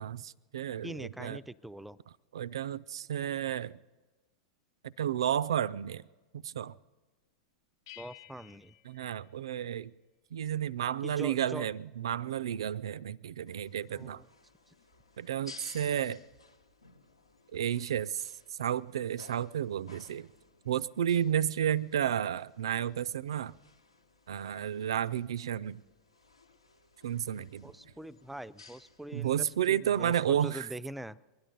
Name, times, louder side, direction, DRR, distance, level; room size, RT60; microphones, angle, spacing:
voice 1, 0.0-1.4 2.3-3.8 4.8-6.0 6.3-6.7 8.8-9.9 10.3-14.2 15.2-16.2 17.5-18.3 18.6-20.3 20.6-23.5 24.3-25.8 27.0-27.7 29.1-30.7, right 10 dB, 65° right, 23 dB, 0.4 m, -32 dB
voice 2, 0.8-2.0 8.0-8.7 11.0-11.7 13.9-14.3 14.7-14.8 27.4-31.2, right 1 dB, 5° right, 17 dB, 0.4 m, -43 dB
sound 1, 7.9-10.1, left 15 dB, 60° left, 0.8 m, -55 dB
sound 2, 13.5-29.6, left 4 dB, 85° left, 1.2 m, -57 dB
22.0 x 11.0 x 5.3 m, 1.2 s
figure-of-eight pair, 90°, 3 cm